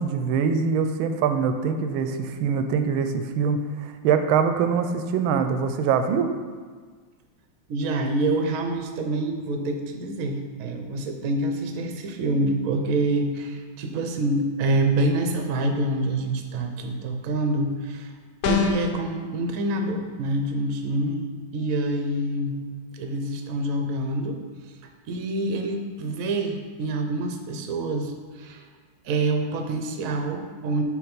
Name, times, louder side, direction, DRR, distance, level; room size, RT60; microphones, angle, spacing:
voice 1, 0.0-6.3, right 6 dB, 85° right, 8 dB, 1.4 m, -23 dB
voice 2, 7.7-18.1 18.4-22.6 22.9-24.4 25.1-28.7 29.0-30.8, right 2 dB, 60° right, 5 dB, 0.9 m, -26 dB
sound 1, 18.4-19.0, left 5 dB, 70° left, 0.9 m, -23 dB
9.9 x 3.3 x 5.2 m, 1.5 s
omnidirectional pair, 2.2 m